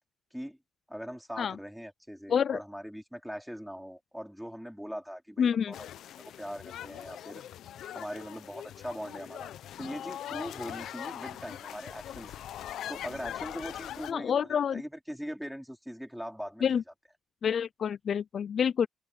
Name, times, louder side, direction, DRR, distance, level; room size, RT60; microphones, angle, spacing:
voice 1, 0.9-5.9 6.2-7.4 7.9-9.5 9.8-12.3 12.9-16.7, equal, ahead, 3.4 m, -41 dB
voice 2, 5.4-5.7 14.1-14.8 16.6-16.8 17.4-18.9, left 7 dB, 55° left, 0.4 m, -27 dB
sound 1, 5.7-14.1, left 11 dB, 75° left, 0.9 m, -41 dB
open air
cardioid pair, 90°, 0 cm